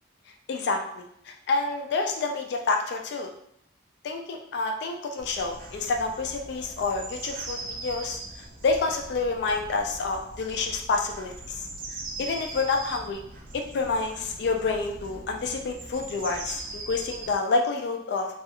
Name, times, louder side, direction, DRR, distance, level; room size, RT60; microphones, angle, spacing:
voice 1, 0.5-3.3 4.0-8.2 8.6-11.7 12.2-13.2 13.5-18.3, left 3 dB, 60° left, 3 dB, 0.3 m, -28 dB
sound 1, 5.2-17.4, right 2 dB, 45° right, 0.4 m, -41 dB
2.4 x 2.3 x 2.8 m, 0.74 s
head